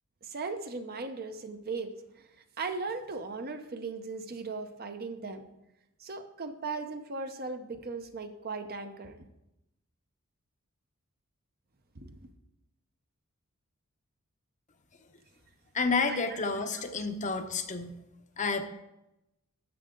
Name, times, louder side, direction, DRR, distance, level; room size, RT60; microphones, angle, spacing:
voice 1, 0.2-2.3 2.6-5.4 6.0-9.2 11.9-12.2 16.1-16.4 16.7-16.8, right 4 dB, 45° right, 7 dB, 0.8 m, -38 dB
voice 2, 15.7-17.9 18.4-18.6, left 4 dB, 35° left, 6 dB, 0.8 m, -30 dB
13.0 x 8.0 x 3.8 m, 0.91 s
head